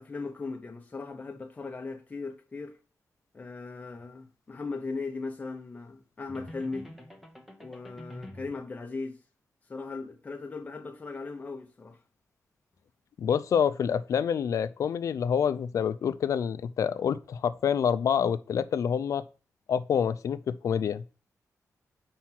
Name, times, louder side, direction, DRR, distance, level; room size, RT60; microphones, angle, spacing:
voice 1, 0.0-2.8 3.3-6.9 7.6-9.2 9.7-12.0, left 3 dB, 25° left, 0.9 m, -38 dB
sound 1, 6.3-8.6, equal, 5° right, 0.9 m, -46 dB
voice 2, 13.2-19.2 19.7-21.0, left 7 dB, 65° left, 0.4 m, -27 dB
4.7 x 4.5 x 5.9 m
wide cardioid pair, 135°, 6 cm